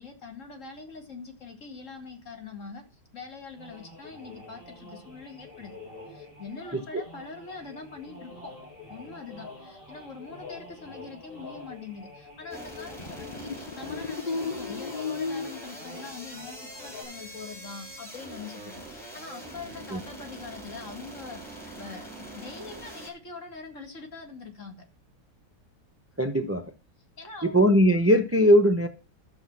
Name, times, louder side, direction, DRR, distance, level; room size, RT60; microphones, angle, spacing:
voice 1, 0.0-5.7 6.1-8.5 8.9-24.8 27.2-27.7, left 4 dB, 45° left, 2.3 m, -43 dB
sound 1, 3.5-17.0, left 3 dB, 30° left, 6.2 m, -46 dB
sound 2, 12.5-23.1, right 1 dB, ahead, 3.7 m, -44 dB
sound 3, 13.0-15.7 19.1-19.9, left 4 dB, 85° left, 0.3 m, -35 dB
voice 2, 26.2-26.6 27.4-28.9, equal, 20° right, 0.4 m, -20 dB
12.0 x 6.5 x 5.9 m
omnidirectional pair, 1.9 m